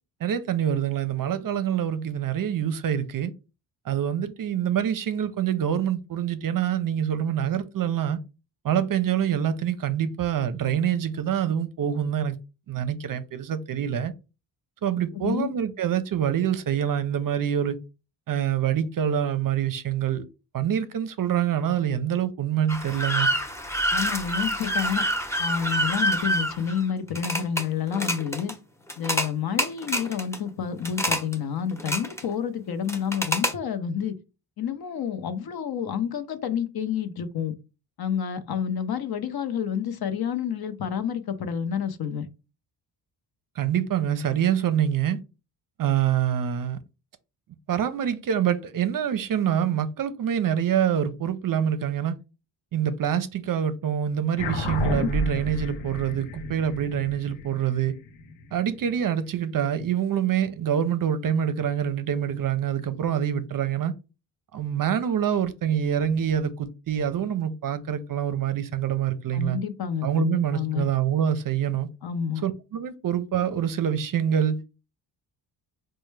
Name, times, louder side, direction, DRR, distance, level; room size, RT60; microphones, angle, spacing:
voice 1, 0.2-3.3 3.9-8.2 8.6-12.4 12.7-14.1 14.8-17.8 18.3-20.2 20.5-23.3 43.6-45.2 45.8-46.8 47.7-52.1 52.7-57.9 58.5-63.9 64.5-69.6 70.0-71.9 72.4-74.6, right 9 dB, 45° right, 0.5 m, -26 dB
voice 2, 15.1-15.5 23.9-25.0 25.4-28.5 29.0-34.1 34.6-37.5 38.0-42.3 69.3-70.9 72.0-72.4, left 8 dB, 55° left, 0.7 m, -29 dB
sound 1, 22.7-27.6 27.9-28.5 28.9-29.3 29.6-30.4 30.8-31.3 31.7-32.3 32.9-33.5, equal, 5° left, 0.7 m, -27 dB
sound 2, 54.4-59.1, left 1 dB, 85° left, 0.8 m, -31 dB
4.2 x 2.2 x 3.2 m
cardioid pair, 70°, 45 cm